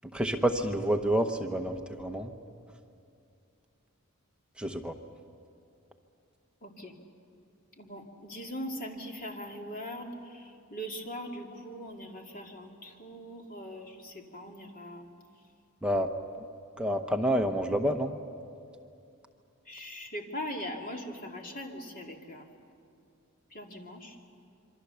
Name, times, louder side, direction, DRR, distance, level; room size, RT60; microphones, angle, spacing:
voice 1, 0.1-2.3 4.6-4.9 15.8-16.1 16.8-18.1, right 1 dB, 5° right, 4 dB, 0.9 m, -28 dB
voice 2, 6.6-6.9 7.8-15.1 19.7-22.4 23.5-24.2, equal, 40° left, 1 dB, 2.5 m, -41 dB
27.0 x 24.0 x 6.9 m, 2.5 s
head